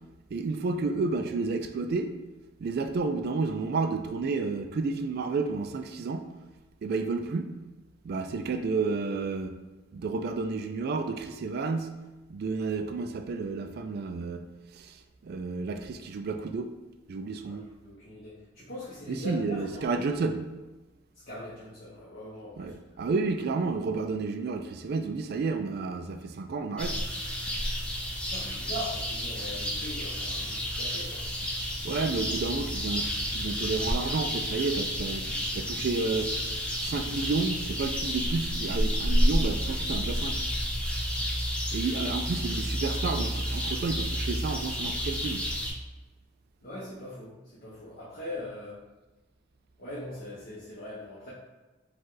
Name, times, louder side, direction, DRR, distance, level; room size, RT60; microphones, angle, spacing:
voice 1, 0.3-2.1 2.6-6.3 6.8-7.5 8.0-9.6 9.9-11.9 12.3-14.5 14.8-14.9 15.2-16.7 17.1-17.7 19.1-20.4 22.6-27.0 31.8-35.3 35.5-36.3 36.8-40.4 41.7-45.5, right 4 dB, 55° right, 0.3 m, -31 dB
voice 2, 17.5-20.1 21.1-22.7 28.3-31.2 42.0-42.2 46.6-48.8 49.8-51.3, left 1 dB, 50° left, 1.0 m, -41 dB
sound 1, 26.8-45.7, equal, 5° left, 0.7 m, -30 dB
5.1 x 2.3 x 3.8 m
head